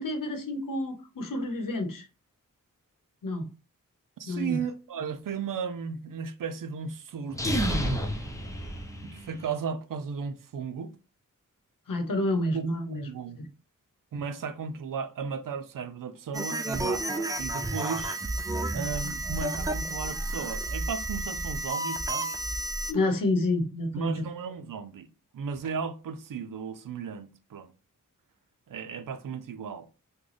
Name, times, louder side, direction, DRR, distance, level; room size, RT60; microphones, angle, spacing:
voice 1, 0.0-2.1 3.2-3.5 4.3-4.6 11.9-13.1 13.4-13.5 22.9-24.2, left 1 dB, 80° left, 0.9 m, -29 dB
voice 2, 4.2-7.7 9.0-10.9 12.5-13.4 14.1-18.2 18.7-22.4 23.9-25.1 25.3-27.7 28.7-29.9, right 6 dB, 80° right, 0.6 m, -35 dB
sound 1, 7.3-9.4, equal, 10° left, 0.7 m, -30 dB
sound 2, 16.3-22.9, right 2 dB, 10° right, 0.3 m, -31 dB
3.8 x 2.2 x 3.2 m
cardioid pair, 60°, 33 cm